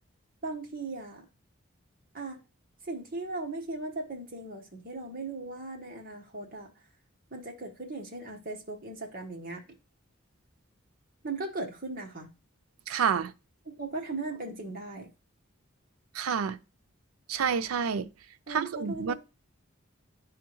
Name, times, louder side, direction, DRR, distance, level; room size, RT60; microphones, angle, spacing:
voice 1, 0.4-1.2 2.1-2.4 2.8-6.7 7.3-9.6 11.2-12.3 13.6-15.1 18.5-19.1, right 3 dB, 40° right, 1.2 m, -38 dB
voice 2, 12.9-13.3 16.2-16.6 17.3-18.1 18.5-19.1, right 7 dB, 85° right, 0.5 m, -28 dB
10.5 x 3.6 x 3.0 m
head